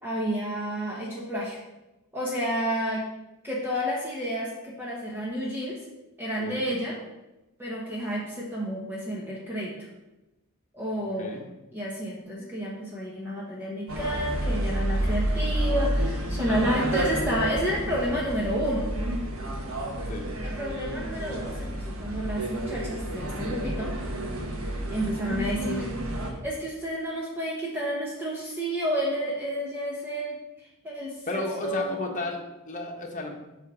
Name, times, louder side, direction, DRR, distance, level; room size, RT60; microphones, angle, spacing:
voice 1, 0.0-1.6 2.1-3.0 3.4-5.8 6.2-6.9 7.6-9.7 10.7-11.4 11.7-18.9 20.4-23.9 24.9-25.9 26.2-32.0, equal, 10° right, -5 dB, 1.1 m, -30 dB
sound 1, 13.9-26.3, right 1 dB, 75° right, 1.2 m, -30 dB
voice 2, 31.3-33.4, left 2 dB, 35° left, 1 dB, 1.2 m, -33 dB
8.1 x 3.5 x 6.1 m, 0.99 s
head